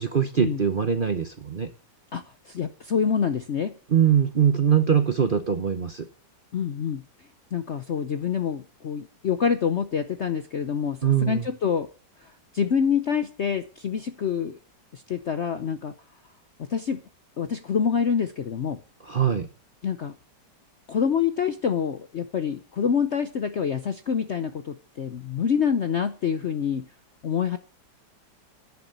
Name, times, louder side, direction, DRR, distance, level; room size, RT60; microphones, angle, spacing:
voice 1, 0.0-1.7 3.9-6.1 11.0-11.5 19.0-19.5, right 8 dB, 50° right, 9 dB, 0.6 m, -22 dB
voice 2, 2.1-3.7 6.5-7.0 7.5-11.9 12.5-14.6 14.9-15.9 16.7-17.0 17.4-18.8 19.8-20.1 20.9-26.9 27.2-27.6, left 7 dB, 55° left, 9 dB, 0.7 m, -26 dB
11.0 x 7.0 x 9.2 m, 0.39 s
omnidirectional pair, 2.0 m